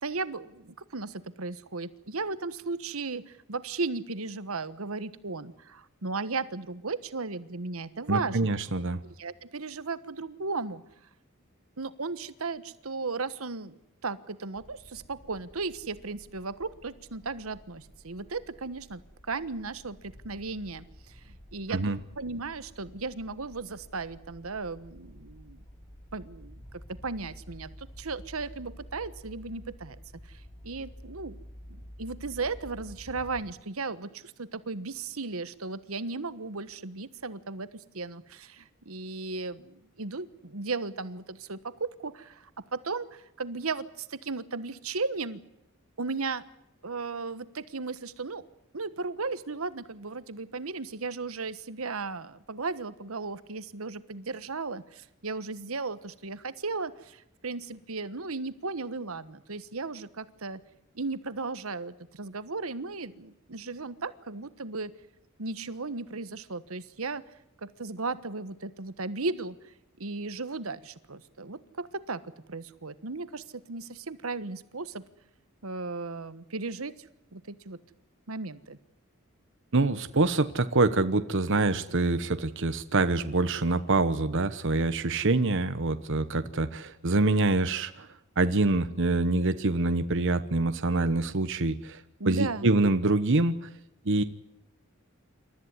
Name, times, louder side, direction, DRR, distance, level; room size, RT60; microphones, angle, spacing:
voice 1, 0.0-8.4 9.2-10.8 11.8-19.0 19.3-21.8 22.2-25.6 26.1-26.6 27.0-30.0 30.3-31.4 31.7-45.4 46.0-46.4 46.8-48.4 48.7-60.6 60.9-64.9 65.4-67.2 67.6-69.7 70.0-72.2 72.5-75.0 75.6-76.9 77.3-77.8 78.3-78.8 92.2-92.7, right 3 dB, 75° right, 14 dB, 1.3 m, -36 dB
voice 2, 8.1-9.0 21.7-22.0 79.7-88.1 88.4-93.7 94.0-94.2, right 2 dB, 60° right, 10 dB, 1.1 m, -25 dB
sound 1, 14.6-33.5, equal, 20° left, 3.1 m, -50 dB
28.0 x 14.0 x 9.7 m, 0.85 s
head